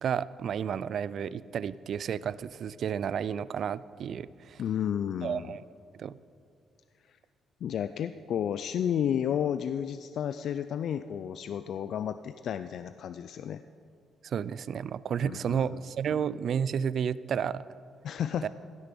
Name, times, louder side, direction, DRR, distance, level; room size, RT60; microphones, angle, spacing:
voice 1, 0.0-4.6 5.2-5.6 5.9-6.2 14.2-17.6 18.4-18.5, right 8 dB, 60° right, 18 dB, 0.3 m, -31 dB
voice 2, 4.6-5.5 7.6-13.6 15.2-15.8 18.0-18.5, left 9 dB, 65° left, 11 dB, 0.3 m, -32 dB
16.0 x 6.6 x 6.9 m, 2.3 s
cardioid pair, 90°, 0 cm